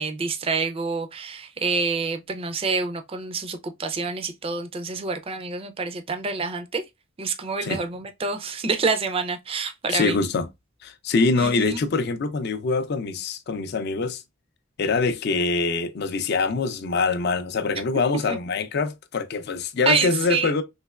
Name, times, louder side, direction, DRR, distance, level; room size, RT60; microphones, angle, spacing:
voice 1, 0.0-6.8 7.2-10.2 11.3-11.8 18.3-18.4 19.9-20.5, right 4 dB, 30° right, 0.4 m, -27 dB
voice 2, 9.9-10.5 10.8-14.2 14.8-20.6, left 4 dB, 55° left, 0.4 m, -24 dB
3.2 x 2.9 x 2.3 m
head